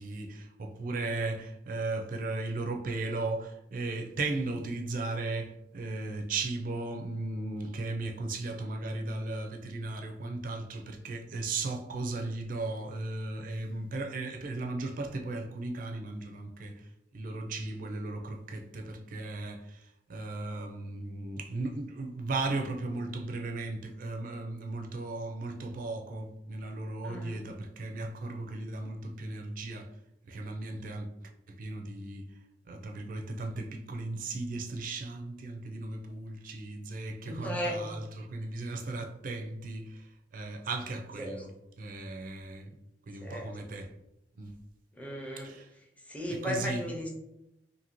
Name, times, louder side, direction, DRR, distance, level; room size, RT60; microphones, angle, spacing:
voice 1, 0.0-16.9 17.1-29.9 30.3-32.3 32.7-40.1 40.3-41.5 41.8-42.8 43.1-43.9 44.4-44.5 45.4-45.7 46.4-46.8, right 2 dB, 50° right, 0.4 m, -36 dB
voice 2, 27.0-27.4 37.3-37.9 41.2-41.4 43.2-43.6 44.9-45.5 46.1-47.1, equal, 10° left, 0.5 m, -36 dB
2.7 x 2.6 x 2.9 m
head